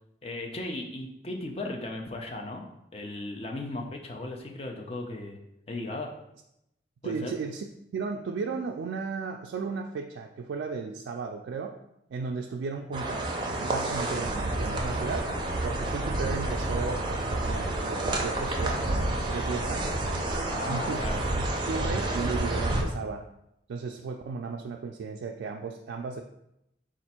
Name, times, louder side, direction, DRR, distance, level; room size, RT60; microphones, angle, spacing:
voice 1, 0.2-2.7 2.9-5.4 5.7-6.1 7.0-7.3 20.5-21.2, left 2 dB, 35° left, 2 dB, 0.5 m, -36 dB
voice 2, 7.0-7.7 7.9-11.8 12.1-15.3 15.6-20.1 20.7-21.0 21.3-23.3 23.7-26.2, right 5 dB, 80° right, 1 dB, 0.3 m, -35 dB
sound 1, 12.9-22.8, right 1 dB, 25° right, 0.5 m, -29 dB
4.3 x 2.5 x 4.2 m, 0.83 s
head